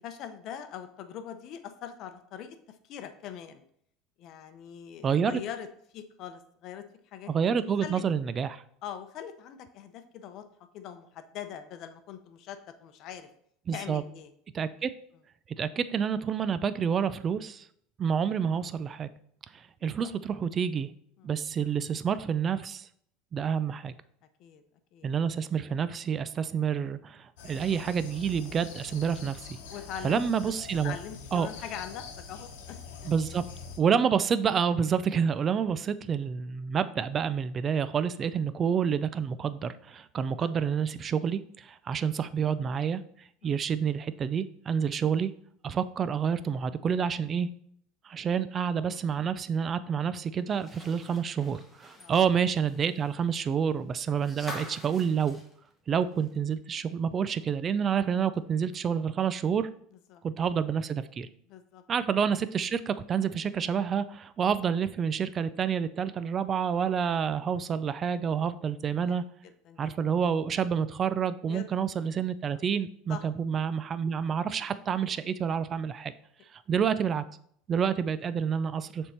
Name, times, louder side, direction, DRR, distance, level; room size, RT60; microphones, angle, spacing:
voice 1, 0.0-3.6 4.2-5.7 5.9-6.8 7.1-7.3 7.8-8.0 8.8-10.4 10.7-13.3 13.7-14.3 21.2-21.3 24.4-24.6 24.9-25.1 29.7-30.2 30.8-32.8 33.0-33.1 35.6-35.8 43.4-43.5 52.0-52.1 60.1-60.2 61.5-61.8 69.1-69.2 69.4-69.9 71.4-71.7 72.5-72.6 73.1-73.2, left 9 dB, 50° left, 9 dB, 0.7 m, -42 dB
voice 2, 7.3-8.6 13.7-14.0 14.5-14.9 15.6-17.7 18.0-19.1 19.8-20.9 21.2-22.9 23.3-23.9 25.0-29.6 30.0-31.0 31.3-31.5 33.1-33.4 33.8-43.0 43.4-45.3 45.6-47.5 48.0-55.4 55.9-59.7 60.2-61.3 61.9-69.2 69.8-76.1 76.7-77.2 77.7-79.1, right 7 dB, 30° right, 14 dB, 0.4 m, -28 dB
sound 1, 27.4-33.8, left 5 dB, 90° left, 1.0 m, -45 dB
sound 2, 50.5-56.5 56.9-57.0 58.3-58.4, left 1 dB, 5° left, 1.2 m, -46 dB
6.7 x 3.6 x 4.3 m, 0.66 s
supercardioid pair, 135°, 0 cm